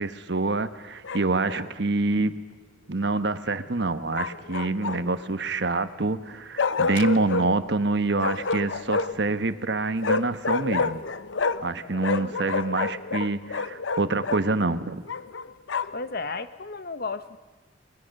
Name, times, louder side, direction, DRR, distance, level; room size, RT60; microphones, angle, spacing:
voice 1, 0.0-2.3 2.9-11.0 11.6-15.0, right 3 dB, 60° right, 11 dB, 1.1 m, -26 dB
Bark, 1.0-1.7 4.1-5.2 6.6-7.5 8.2-9.3 10.0-11.7 12.0-14.4 15.1-16.0, left 4 dB, 80° left, 0.8 m, -28 dB
voice 2, 11.8-12.3 15.9-17.4, left 4 dB, 50° left, 13 dB, 1.0 m, -34 dB
29.0 x 20.5 x 6.6 m, 1.3 s
head